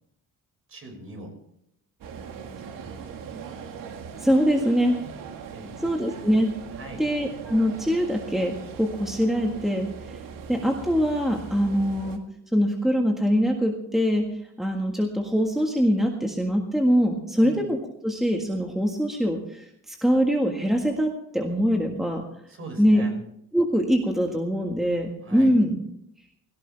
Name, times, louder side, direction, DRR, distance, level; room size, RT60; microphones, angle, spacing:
voice 1, 0.7-1.4 2.7-3.6 5.0-5.1 5.5-6.2 6.7-7.1 17.4-17.6 22.5-23.1 25.2-25.6, right 2 dB, 40° right, 3 dB, 5.8 m, -42 dB
sound 1, 2.0-12.2, right 6 dB, 80° right, 2.0 m, -40 dB
voice 2, 4.2-5.0 5.8-6.5 7.0-10.2 10.5-12.2 12.5-14.3 14.6-17.8 18.0-22.2 22.8-23.0 23.5-25.8, equal, ahead, 1 dB, 1.7 m, -23 dB
17.5 x 17.5 x 3.5 m, 0.72 s
cardioid pair, 130°, 33 cm